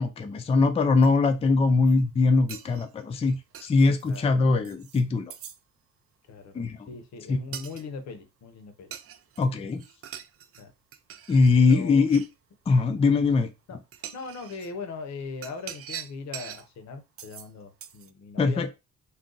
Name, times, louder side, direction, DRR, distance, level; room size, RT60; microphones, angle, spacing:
voice 1, 0.0-5.3 6.5-6.9 7.3-7.4 9.4-9.8 11.3-12.2 12.7-13.5 18.4-18.7, left 3 dB, 20° left, 0.4 m, -22 dB
sound 1, 1.0-1.1 1.7-2.0 2.5-4.2 4.6-5.0 5.3-5.6 7.5-7.8 8.9-9.5 9.7-10.6 10.9-12.3 13.3-13.4 13.9-14.7 15.4-16.7 17.2-17.5 17.8-18.1, right 9 dB, 50° right, 0.4 m, -43 dB
voice 2, 6.3-8.9 10.6-10.7 11.6-12.1 13.7-13.8 14.1-18.7, left 4 dB, 65° left, 0.8 m, -39 dB
2.5 x 2.3 x 3.8 m
cardioid pair, 90°, 30 cm